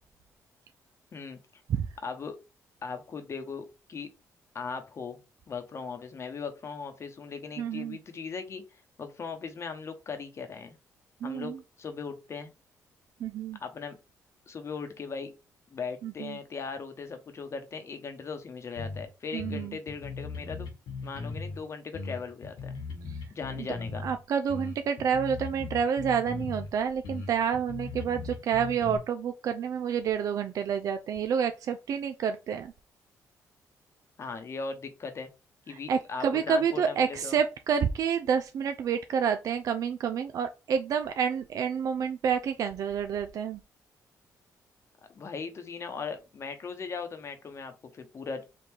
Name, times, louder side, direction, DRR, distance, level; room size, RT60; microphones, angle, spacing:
voice 1, 2.0-2.4 2.8-4.1 4.5-5.2 5.5-10.8 11.2-12.5 13.6-14.0 14.5-15.3 15.7-20.7 21.0-22.8 23.3-24.1 34.2-35.3 35.7-37.4 45.1-48.4, left 5 dB, 45° left, 0.9 m, -38 dB
voice 2, 7.6-8.0 11.2-11.6 13.2-13.6 16.0-16.4 19.3-19.8 23.1-23.2 23.6-23.7 24.0-32.7 35.7-43.6, right 7 dB, 65° right, 0.4 m, -29 dB
sound 1, 18.8-19.0 19.4-21.6 21.9-24.1 24.5-26.7 27.0-29.0, left 4 dB, 90° left, 1.5 m, -38 dB
3.6 x 2.4 x 4.5 m
cardioid pair, 75°, 6 cm